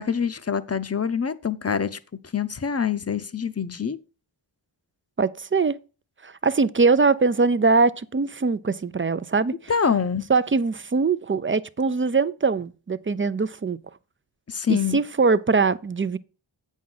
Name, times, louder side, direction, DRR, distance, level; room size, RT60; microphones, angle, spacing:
voice 1, 0.0-2.0 2.3-4.0 9.7-10.3 14.5-15.0, left 7 dB, 30° left, 0.7 m, -25 dB
voice 2, 5.2-5.8 6.2-9.5 10.3-13.8 14.7-16.2, right 4 dB, 25° right, 0.5 m, -22 dB
8.4 x 6.3 x 3.8 m
wide cardioid pair, 75°, 49 cm